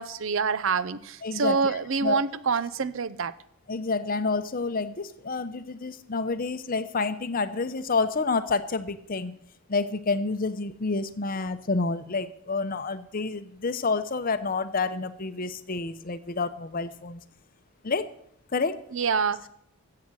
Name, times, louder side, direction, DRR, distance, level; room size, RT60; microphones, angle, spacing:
voice 1, 0.0-3.3 18.9-19.4, right 5 dB, 60° right, 0.6 m, -26 dB
voice 2, 1.2-2.2 3.7-9.4 9.7-17.2 17.8-18.1 18.5-18.8, left 4 dB, 40° left, 0.7 m, -29 dB
14.5 x 7.7 x 6.3 m
head